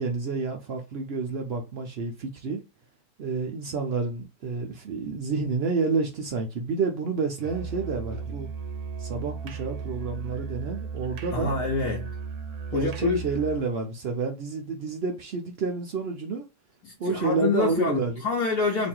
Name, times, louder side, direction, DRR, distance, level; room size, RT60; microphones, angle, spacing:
voice 1, 0.0-2.6 3.2-8.5 9.0-11.5 12.7-16.5 17.0-18.2, right 4 dB, 90° right, 0.5 m, -29 dB
Musical instrument, 7.4-13.7, right 5 dB, 70° right, 1.1 m, -35 dB
voice 2, 11.3-12.1 12.7-13.2 16.8-18.9, left 4 dB, 70° left, 1.2 m, -27 dB
3.1 x 2.4 x 4.3 m
omnidirectional pair, 1.8 m